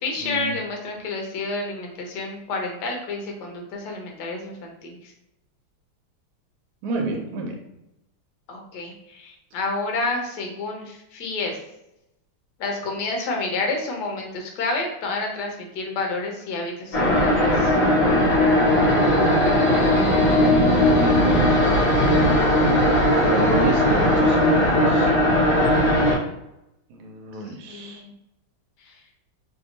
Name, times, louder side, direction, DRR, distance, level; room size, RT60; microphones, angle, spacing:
voice 1, 0.0-5.0 8.5-11.6 12.6-17.7 27.7-28.1 28.9-29.0, left 3 dB, 70° left, 1 dB, 1.1 m, -29 dB
voice 2, 6.8-7.6 19.9-21.6 23.3-25.1 26.9-28.0, equal, 80° right, 2 dB, 1.5 m, -29 dB
sound 1, 16.9-26.2, left 1 dB, 45° left, 1.1 m, -18 dB
3.4 x 2.7 x 2.7 m, 0.86 s
omnidirectional pair, 2.4 m